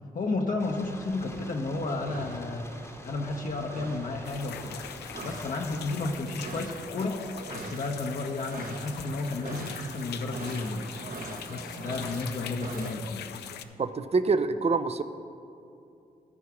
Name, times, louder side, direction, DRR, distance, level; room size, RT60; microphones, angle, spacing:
voice 1, 0.1-2.7 3.0-4.8 5.2-7.2 7.5-10.9 11.5-13.3, left 3 dB, 55° left, 1 dB, 0.8 m, -32 dB
sound 1, 0.6-6.2, left 1 dB, 15° left, 1.0 m, -46 dB
sound 2, 1.1-12.9, right 3 dB, 60° right, 1.0 m, -43 dB
sound 3, 4.2-13.6, left 9 dB, 85° left, 0.4 m, -42 dB
voice 2, 13.8-15.0, right 4 dB, 40° right, 11 dB, 0.5 m, -26 dB
12.5 x 4.7 x 6.1 m, 2.6 s
supercardioid pair, 50°, 17 cm